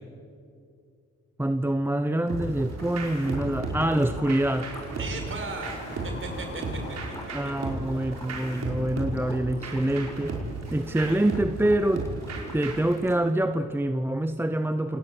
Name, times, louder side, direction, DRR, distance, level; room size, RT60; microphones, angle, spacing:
voice 1, 1.4-4.7 7.3-10.4 10.7-12.0 12.5-15.0, right 1 dB, 5° right, 10 dB, 0.8 m, -26 dB
sound 1, 2.3-13.1, equal, 10° left, 4.9 m, -44 dB
sound 2, 2.3-13.0, right 2 dB, 60° right, 5.5 m, -35 dB
sound 3, 3.1-9.9, left 2 dB, 40° left, 7.5 m, -47 dB
voice 2, 5.0-6.6 7.4-7.5 7.9-8.1 9.3-9.4 10.8-11.2, right 3 dB, 40° right, 3 dB, 6.5 m, -37 dB
28.0 x 19.0 x 8.2 m, 2.4 s
cardioid pair, 90°, 30 cm